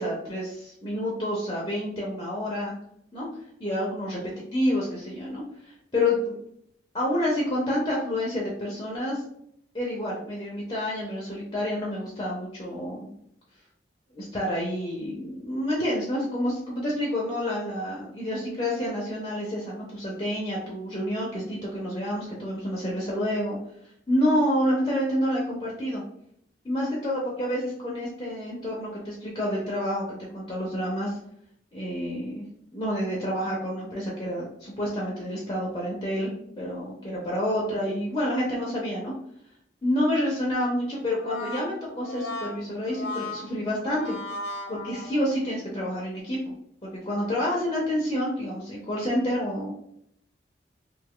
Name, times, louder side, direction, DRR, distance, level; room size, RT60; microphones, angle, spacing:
voice 1, 0.0-2.7 3.1-3.3 3.6-6.3 6.9-9.2 9.7-13.1 14.1-23.6 24.1-26.0 26.6-31.2 31.7-32.4 32.7-39.1 39.8-44.1 44.7-46.4 46.8-49.7, left 1 dB, 25° left, -4 dB, 0.6 m, -28 dB
Brass instrument, 41.0-45.5, left 2 dB, 90° left, 0.7 m, -36 dB
2.7 x 2.3 x 3.5 m, 0.71 s
head